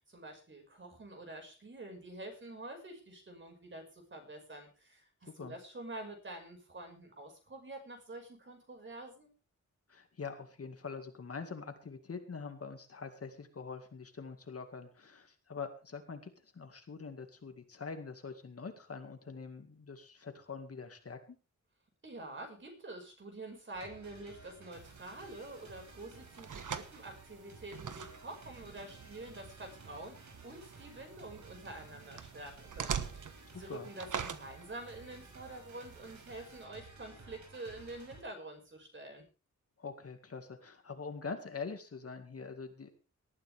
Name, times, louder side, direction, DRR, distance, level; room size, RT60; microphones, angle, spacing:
voice 1, 0.1-9.3 22.0-39.3, right 2 dB, 40° right, 3 dB, 5.9 m, -47 dB
voice 2, 9.9-21.4 33.5-33.9 39.8-42.9, left 5 dB, 50° left, 6 dB, 2.2 m, -44 dB
sound 1, 23.7-38.2, right 3 dB, 70° right, 5.8 m, -55 dB
sound 2, 24.7-36.6, right 7 dB, 90° right, 1.4 m, -45 dB
19.0 x 13.0 x 3.6 m, 0.34 s
wide cardioid pair, 165°, 30 cm